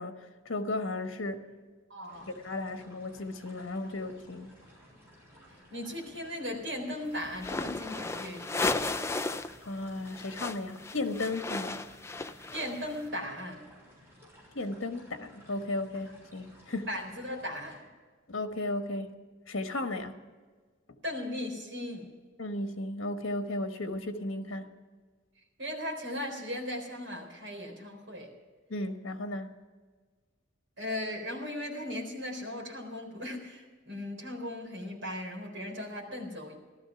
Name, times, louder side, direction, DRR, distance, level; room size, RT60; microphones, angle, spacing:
voice 1, 0.0-1.4 2.4-4.5 9.6-11.8 14.5-16.9 18.3-19.1 19.5-20.2 22.4-24.7 28.7-29.5, left 2 dB, 80° left, 1.3 m, -35 dB
voice 2, 1.9-2.3 5.5-8.8 12.5-13.6 16.9-17.9 21.0-22.1 25.6-28.3 30.8-36.6, left 1 dB, 65° right, 4.1 m, -37 dB
sound 1, 2.1-17.8, equal, 15° right, 6.5 m, -57 dB
sound 2, 7.4-9.6 9.8-13.0, left 3 dB, 15° left, 0.4 m, -34 dB
15.5 x 13.0 x 5.9 m
head